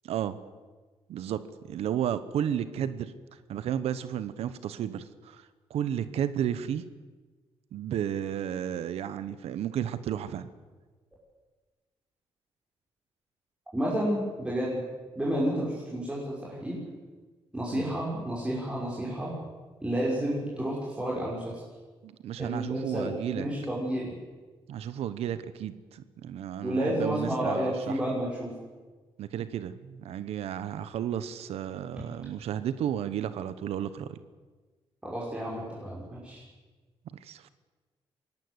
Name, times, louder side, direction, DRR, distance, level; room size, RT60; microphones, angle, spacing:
voice 1, 0.0-0.4 1.1-1.4 1.7-3.1 3.5-6.8 7.7-10.5 17.7-17.9 22.0-23.4 24.7-28.0 29.2-34.2 37.2-37.5, right 10 dB, 90° right, 13 dB, 1.2 m, -33 dB
voice 2, 13.7-14.8 15.2-16.8 17.5-19.3 19.8-21.6 22.4-24.1 26.6-28.5 35.0-36.4, equal, 10° right, -6 dB, 6.3 m, -31 dB
23.0 x 18.0 x 8.2 m, 1.3 s
cardioid pair, 120°, 10 cm